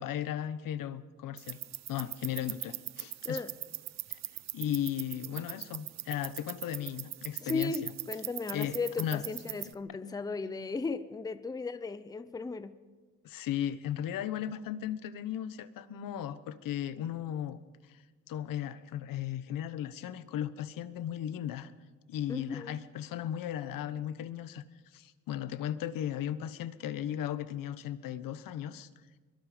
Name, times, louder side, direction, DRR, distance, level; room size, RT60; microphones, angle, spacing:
voice 1, 0.0-1.6 1.9-3.4 4.1-4.2 4.5-7.9 8.5-9.2 13.2-17.6 17.9-18.0 18.3-21.7 22.1-24.6 24.9-28.9, left 10 dB, 80° left, 1.2 m, -36 dB
sound 1, 1.4-9.7, right 13 dB, 55° right, 0.7 m, -41 dB
voice 2, 7.4-12.8 22.3-22.8, left 4 dB, 10° left, 0.6 m, -36 dB
24.0 x 23.0 x 5.2 m
cardioid pair, 165°, 33 cm